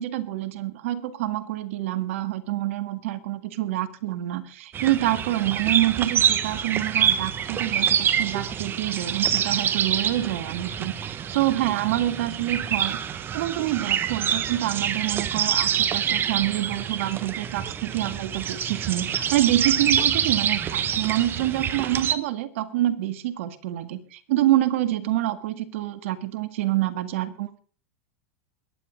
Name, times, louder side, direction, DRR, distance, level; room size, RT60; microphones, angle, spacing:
voice 1, 0.0-27.6, right 14 dB, 70° right, 10 dB, 2.0 m, -27 dB
sound 1, 4.7-22.1, right 8 dB, 30° right, 1.4 m, -26 dB
22.5 x 10.5 x 3.8 m, 0.41 s
hypercardioid pair, 115°, 7 cm